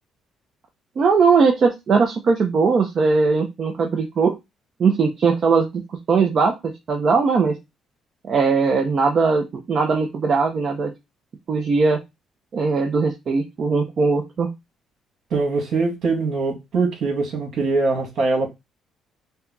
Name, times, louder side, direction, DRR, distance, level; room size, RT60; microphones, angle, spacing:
voice 1, 1.0-4.4 4.8-5.8 6.1-7.6 8.2-10.9 11.5-12.0 12.5-14.5, right 4 dB, 50° right, 0.9 m, -19 dB
voice 2, 15.3-18.5, right 3 dB, 65° right, 2.2 m, -22 dB
5.3 x 2.4 x 4.0 m
cardioid pair, 80°, 0 cm